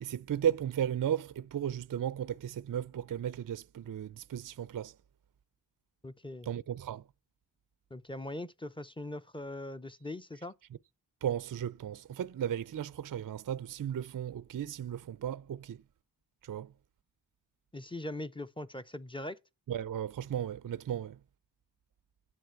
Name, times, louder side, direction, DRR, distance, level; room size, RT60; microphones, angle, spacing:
voice 1, 0.0-4.9 6.5-7.0 11.2-15.8 16.4-16.7 19.7-21.2, right 9 dB, 45° right, 0.4 m, -35 dB
voice 2, 6.0-6.5 7.9-10.5 17.7-19.4, left 1 dB, 10° left, 0.6 m, -41 dB
10.5 x 7.6 x 4.6 m
wide cardioid pair, 40°, 46 cm